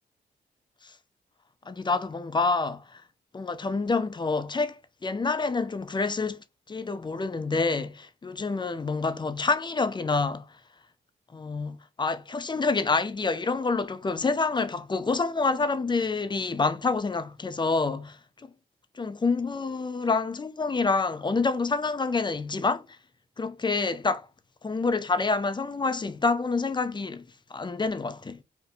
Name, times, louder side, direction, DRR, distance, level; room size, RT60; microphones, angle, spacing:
voice 1, 1.7-3.0 3.3-10.5 11.3-18.5 19.0-22.9 23.4-24.3 24.6-27.2 27.5-28.4, left 4 dB, 25° left, 0.4 m, -27 dB
2.5 x 2.1 x 2.6 m
supercardioid pair, 50°, 20 cm